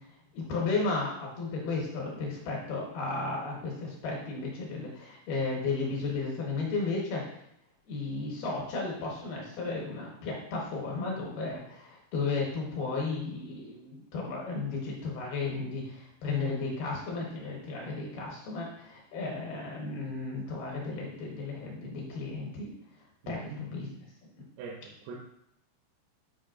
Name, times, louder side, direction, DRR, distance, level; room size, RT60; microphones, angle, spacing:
voice 1, 0.3-7.3 7.9-22.7 23.3-23.9, left 3 dB, 70° left, -2 dB, 2.5 m, -34 dB
voice 2, 23.2-23.7 24.6-25.2, right 3 dB, 90° right, -1 dB, 3.5 m, -42 dB
8.5 x 5.2 x 2.6 m, 0.78 s
omnidirectional pair, 5.7 m